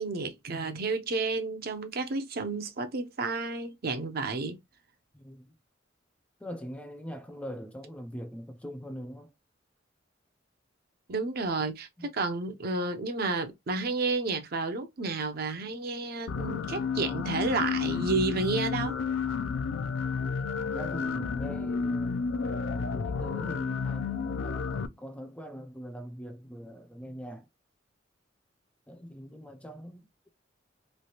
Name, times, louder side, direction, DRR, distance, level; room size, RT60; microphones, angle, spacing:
voice 1, 0.0-4.6 11.1-19.0, right 3 dB, 55° right, 0.6 m, -31 dB
voice 2, 5.1-5.5 6.4-9.3 12.0-12.1 20.7-22.5 23.0-27.5 28.9-30.3, equal, 5° left, 0.4 m, -42 dB
sound 1, 16.3-24.9, left 5 dB, 85° left, 0.4 m, -31 dB
3.2 x 2.4 x 2.8 m
head